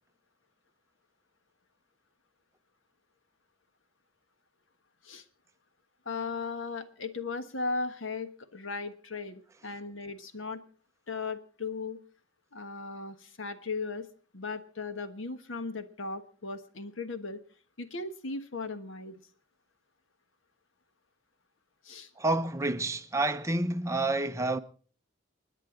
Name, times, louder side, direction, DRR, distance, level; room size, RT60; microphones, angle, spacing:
voice 1, 6.0-10.6 11.1-12.0 12.5-14.1 14.3-17.4 17.8-19.2 21.8-22.1, left 4 dB, 80° left, 1.3 m, -37 dB
voice 2, 22.2-24.6, right 2 dB, 15° right, 0.7 m, -29 dB
29.5 x 9.9 x 3.8 m
head